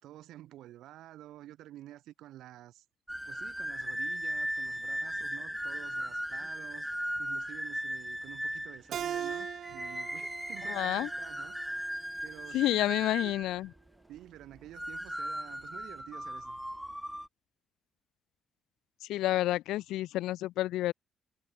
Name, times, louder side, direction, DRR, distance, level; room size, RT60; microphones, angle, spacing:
voice 1, 0.0-2.9 3.3-6.9 7.2-9.5 9.7-11.6 12.2-13.3 14.1-16.6, right 13 dB, 85° right, 2.0 m, -50 dB
sound 1, 3.1-13.8 14.6-17.3, equal, ahead, 0.3 m, -37 dB
Keyboard (musical), 8.9-12.2, right 9 dB, 65° right, 0.8 m, -40 dB
voice 2, 10.7-11.1 12.5-13.7 19.0-20.9, left 15 dB, 90° left, 0.7 m, -29 dB
cardioid pair, 90°, 0 cm